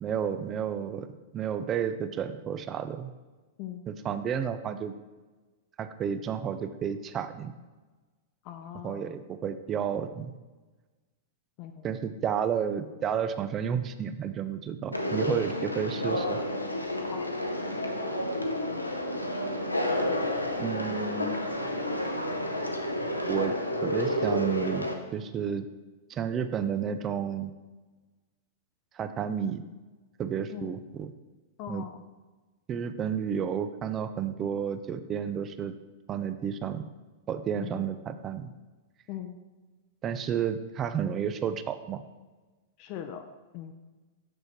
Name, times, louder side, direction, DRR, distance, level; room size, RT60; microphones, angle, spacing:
voice 1, 0.0-3.1 3.9-4.9 5.8-7.5 8.8-10.3 11.8-16.4 20.6-21.4 23.3-23.5 23.8-25.7 26.1-27.5 28.9-29.6 30.2-31.1 31.7-31.8 32.7-35.7 36.1-36.8 37.3-38.5 40.0-42.0, right 8 dB, 25° right, 11 dB, 0.4 m, -31 dB
voice 2, 8.4-9.1 11.6-11.9 17.1-17.3 30.5-30.7 31.6-32.0 37.6-37.9 39.1-39.4 42.8-43.2 43.5-43.7, left 10 dB, 40° left, 6 dB, 0.5 m, -40 dB
Conversation, 14.9-24.9, left 1 dB, 90° left, 0.6 m, -30 dB
6.4 x 6.1 x 3.0 m, 1.3 s
figure-of-eight pair, 100°, 0 cm